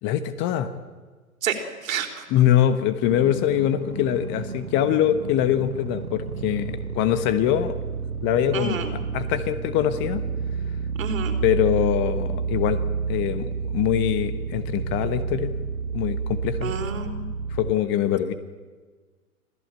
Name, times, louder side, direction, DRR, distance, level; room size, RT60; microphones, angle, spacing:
voice 1, 0.0-0.7 2.3-7.7 8.2-8.8 9.1-10.2 11.4-12.8 13.1-15.5 15.9-16.7 17.5-18.3, left 11 dB, 25° left, 12 dB, 1.2 m, -23 dB
voice 2, 1.8-2.3 8.5-9.0 11.0-11.4 16.6-17.3, right 6 dB, 60° right, 4 dB, 4.0 m, -29 dB
sound 1, 3.0-17.7, right 5 dB, 85° right, 1.5 m, -30 dB
26.0 x 16.0 x 9.0 m, 1.4 s
figure-of-eight pair, 120°, 44 cm